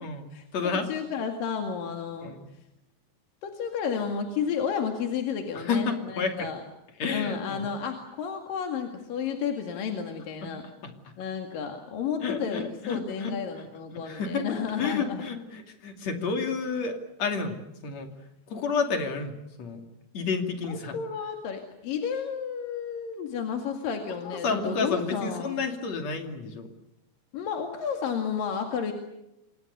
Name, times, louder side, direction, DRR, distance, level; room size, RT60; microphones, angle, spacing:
voice 1, 0.0-0.9 2.2-2.5 5.5-6.5 7.0-7.6 10.4-10.5 10.8-10.9 12.2-14.5 14.8-18.1 18.5-19.8 20.1-21.0 24.3-26.7, left 4 dB, 50° left, 5 dB, 3.6 m, -31 dB
voice 2, 0.7-2.3 3.4-6.6 7.1-10.6 11.2-15.2 20.6-25.6 27.3-28.9, left 6 dB, 75° left, 4 dB, 3.8 m, -32 dB
28.5 x 25.0 x 6.8 m, 0.90 s
omnidirectional pair, 4.1 m